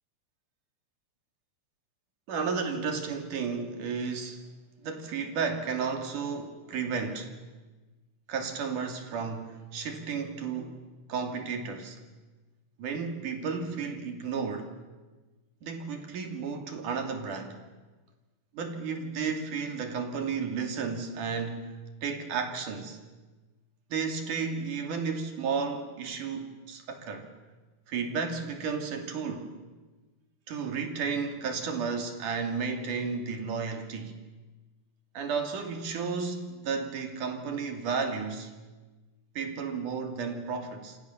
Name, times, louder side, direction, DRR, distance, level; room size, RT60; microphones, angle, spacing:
voice 1, 2.3-4.4 4.8-7.3 8.3-10.8 11.1-12.0 12.8-14.7 15.6-17.6 18.5-23.0 23.9-27.3 27.9-29.5 30.5-34.2 35.1-38.5 39.4-41.0, right 5 dB, 80° right, 5 dB, 4.2 m, -33 dB
28.5 x 26.0 x 7.2 m, 1.2 s
omnidirectional pair, 3.5 m